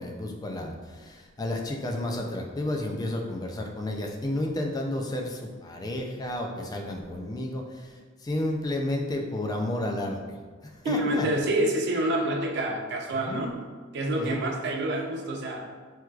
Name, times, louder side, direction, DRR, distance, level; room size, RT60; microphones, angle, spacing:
voice 1, 0.0-10.4 10.6-11.3 13.2-13.6 14.1-14.4, left 1 dB, 20° left, 1 dB, 0.3 m, -32 dB
voice 2, 10.8-13.5 13.9-15.7, right 1 dB, 60° right, 2 dB, 0.4 m, -27 dB
4.4 x 2.3 x 2.3 m, 1.5 s
head